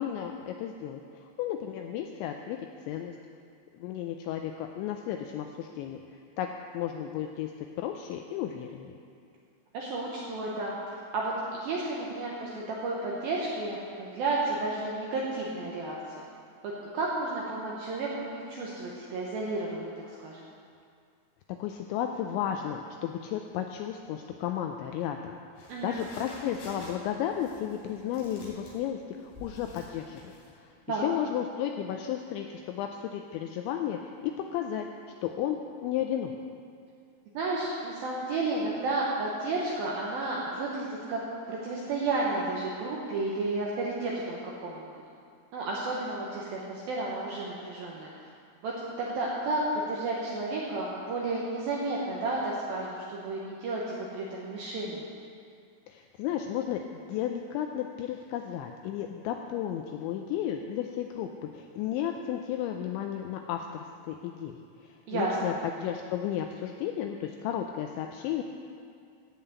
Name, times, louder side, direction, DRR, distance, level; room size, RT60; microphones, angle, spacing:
voice 1, 0.0-2.6 2.9-3.2 3.7-6.0 6.4-7.5 7.8-9.0 21.6-34.9 35.2-36.3 55.9-64.6 64.8-65.5 65.8-68.4, left 10 dB, 90° left, 4 dB, 2.6 m, -33 dB
voice 2, 9.7-16.0 16.6-19.9 20.2-20.5 25.7-26.0 30.9-31.1 37.3-41.2 41.5-44.9 45.5-48.1 48.6-55.0 65.1-65.5, right 2 dB, 75° right, -4 dB, 2.2 m, -32 dB
sound 1, 25.6-30.5, left 1 dB, 65° left, 5.3 m, -49 dB
15.5 x 5.8 x 8.3 m, 2.4 s
omnidirectional pair, 5.8 m